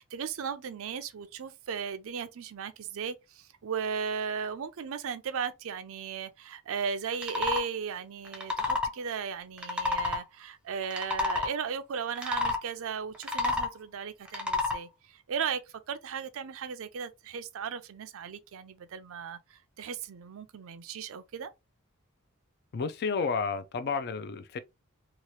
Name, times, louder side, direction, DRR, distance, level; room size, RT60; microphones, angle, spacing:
voice 1, 0.0-15.6 15.9-21.5, right 6 dB, 65° right, 0.4 m, -36 dB
sound 1, 7.1-7.6 8.3-8.9 9.6-10.2 10.8-11.5 12.2-12.6 13.1-13.7 14.3-14.8, left 3 dB, 5° right, 0.6 m, -29 dB
voice 2, 22.7-24.6, left 5 dB, 50° left, 0.4 m, -31 dB
2.9 x 2.3 x 3.0 m
head